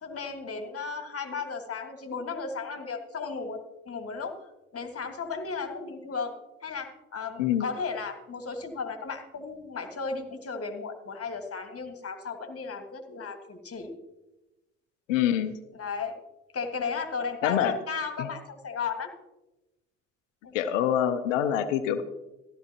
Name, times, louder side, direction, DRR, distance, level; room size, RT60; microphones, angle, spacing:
voice 1, 0.0-4.4 4.7-13.9 15.7-16.2 16.5-19.1 20.4-20.5, left 5 dB, 40° left, 6 dB, 1.7 m, -35 dB
voice 2, 15.1-15.5 17.4-17.8 18.2-18.3 20.5-22.0, left 10 dB, 85° left, 11 dB, 0.7 m, -25 dB
14.0 x 12.5 x 2.9 m, 1.0 s
hypercardioid pair, 50°, 37 cm